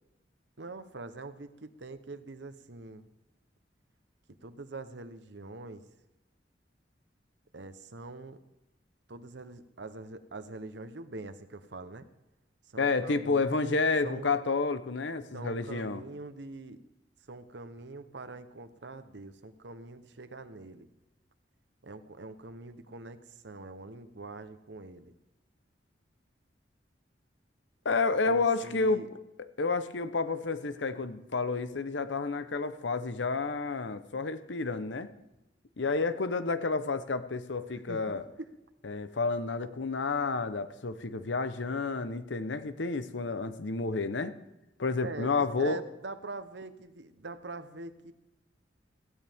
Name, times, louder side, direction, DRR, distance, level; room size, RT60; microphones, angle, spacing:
voice 1, 0.6-3.1 4.3-5.8 7.5-8.4 9.1-12.1 12.7-13.7 14.0-14.3 15.3-16.8 17.3-20.9 21.8-25.1 28.2-29.1 37.9-38.5 45.0-48.1, right 3 dB, 70° right, 10 dB, 1.0 m, -44 dB
voice 2, 12.8-16.0 27.8-29.0 29.4-35.1 35.8-38.2 38.8-44.3 44.8-45.8, left 3 dB, 85° left, 12 dB, 0.9 m, -30 dB
16.5 x 15.5 x 3.6 m, 0.95 s
head